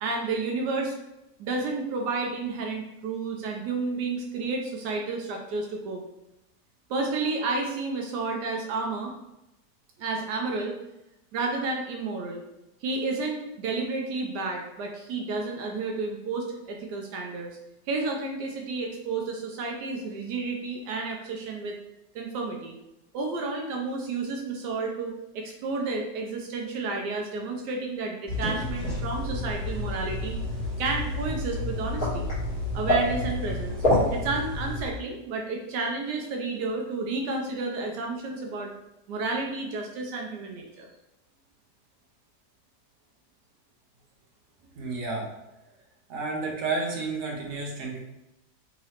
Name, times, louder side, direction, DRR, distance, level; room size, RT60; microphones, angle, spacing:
voice 1, 0.0-0.9 1.4-6.0 6.9-9.2 10.0-10.8 11.3-12.4 12.8-17.6 17.9-21.8 22.1-22.8 23.1-30.4 30.8-32.3 32.7-33.8 34.1-38.7 39.1-40.9, right 3 dB, 80° right, 1 dB, 1.1 m, -31 dB
sound 1, 28.3-34.9, left 1 dB, 30° left, 1.7 m, -28 dB
voice 2, 44.8-45.3 46.1-48.0, right 3 dB, 60° right, 0 dB, 1.1 m, -31 dB
3.7 x 3.0 x 2.8 m, 0.92 s
omnidirectional pair, 1.8 m